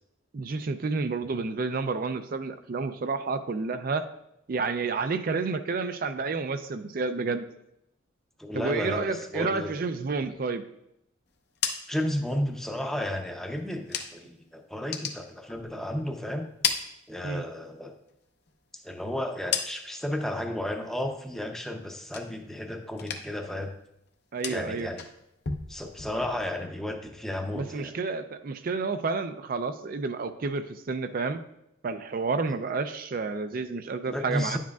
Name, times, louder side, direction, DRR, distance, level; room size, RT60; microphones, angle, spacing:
voice 1, 0.3-4.1 4.5-7.4 8.5-10.6 17.2-17.4 24.3-24.9 27.5-31.4 31.8-34.6, right 4 dB, 45° right, 10 dB, 0.4 m, -30 dB
voice 2, 8.4-9.7 11.9-16.5 17.1-18.0 18.8-23.7 24.5-25.0 25.7-27.9 34.1-34.6, left 1 dB, ahead, 3 dB, 0.6 m, -33 dB
sound 1, 11.3-14.4 14.7-16.0 16.3-17.7 18.0-20.2 20.5-21.0 21.3-22.7 22.9-23.5 23.8-26.6, left 6 dB, 55° left, 0.7 m, -36 dB
10.0 x 7.4 x 2.3 m, 0.82 s
head